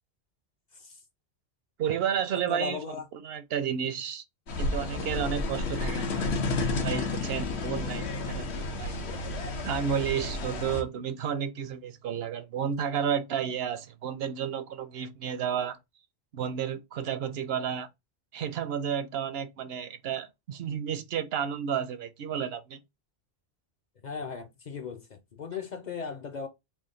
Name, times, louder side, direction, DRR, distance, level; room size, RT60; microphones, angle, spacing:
voice 1, 1.8-2.8 3.2-4.2 4.6-9.0 9.6-15.8 16.3-17.9 18.3-22.8, right 8 dB, 70° right, 0.8 m, -32 dB
voice 2, 2.5-3.0 24.0-26.5, left 5 dB, 50° left, 0.6 m, -37 dB
sound 1, 4.5-10.8, left 3 dB, 80° left, 1.1 m, -31 dB
3.5 x 2.2 x 3.7 m
omnidirectional pair, 1.1 m